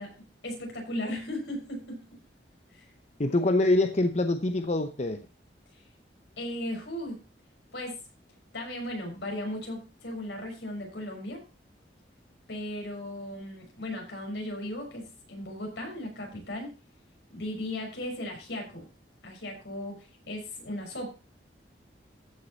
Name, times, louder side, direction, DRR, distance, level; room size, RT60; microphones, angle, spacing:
voice 1, 0.0-2.2 2.7-2.8 6.4-7.2 7.7-8.0 8.5-11.4 12.5-16.8 17.3-18.8 19.2-21.1, left 1 dB, 75° left, 1 dB, 5.9 m, -36 dB
voice 2, 3.2-5.3, left 2 dB, 40° left, 8 dB, 0.8 m, -25 dB
14.5 x 6.6 x 4.0 m, 0.33 s
head